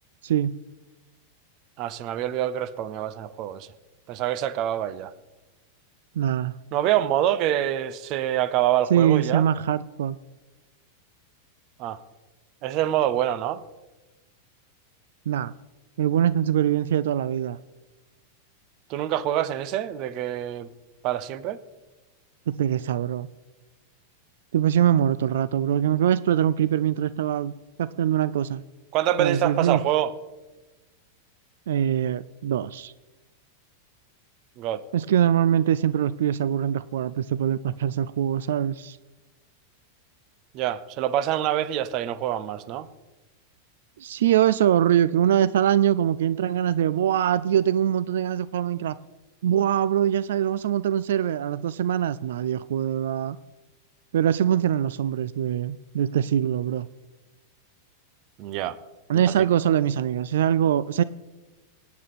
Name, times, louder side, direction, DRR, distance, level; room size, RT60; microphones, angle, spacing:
voice 1, 0.2-0.6 6.2-6.6 8.9-10.2 15.3-15.5 16.0-17.6 22.5-23.3 24.5-27.5 27.8-28.6 29.2-29.8 31.7-32.9 34.9-39.0 44.0-49.0 49.4-53.4 54.1-56.9 59.1-61.0, right 10 dB, 80° right, 0.4 m, -23 dB
voice 2, 1.8-3.7 4.1-5.1 6.7-9.5 11.8-12.0 12.6-13.6 18.9-20.7 21.0-21.6 28.9-30.1 34.6-34.8 40.5-42.9 58.4-58.8 59.4-59.5, right 12 dB, 40° right, 0.7 m, -26 dB
17.5 x 9.4 x 4.1 m
supercardioid pair, 145°, 0 cm